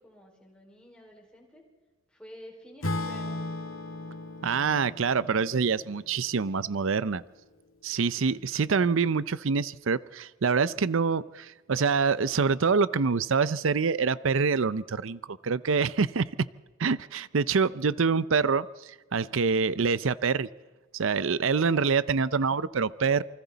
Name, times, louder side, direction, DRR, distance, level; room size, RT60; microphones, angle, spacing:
voice 1, 0.0-1.7 2.1-3.3 7.9-8.4 17.1-17.2, equal, 5° left, -1 dB, 5.0 m, -51 dB
Acoustic guitar / Strum, 2.8-7.0, left 2 dB, 85° left, 2.1 m, -37 dB
voice 2, 4.4-7.2 7.8-16.4 16.8-20.5 20.9-23.2, right 5 dB, 70° right, 17 dB, 0.6 m, -26 dB
28.0 x 25.0 x 4.1 m, 1.3 s
head